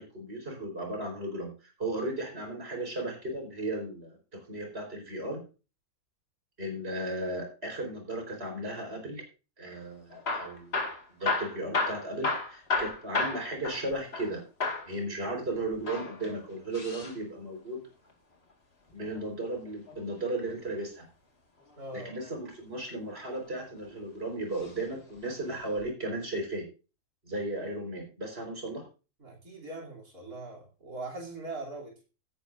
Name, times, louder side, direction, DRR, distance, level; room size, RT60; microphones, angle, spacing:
voice 1, 0.0-1.5 1.8-5.4 6.6-9.2 9.6-10.8 11.1-14.4 14.9-17.8 18.9-21.0 21.9-26.6 27.3-28.8, right 1 dB, 40° right, 2 dB, 4.5 m, -35 dB
Hammer / Drill, 10.1-14.3 14.6-14.9 15.7-17.2 18.9-20.2 21.9-22.3 23.0-23.9 24.5-24.8 25.1-25.2 25.8-25.9, left 3 dB, 45° left, 2.1 m, -33 dB
voice 2, 21.8-22.1 29.2-32.0, right 2 dB, 85° right, -2 dB, 3.6 m, -41 dB
16.5 x 10.0 x 2.6 m, 0.33 s
omnidirectional pair, 1.6 m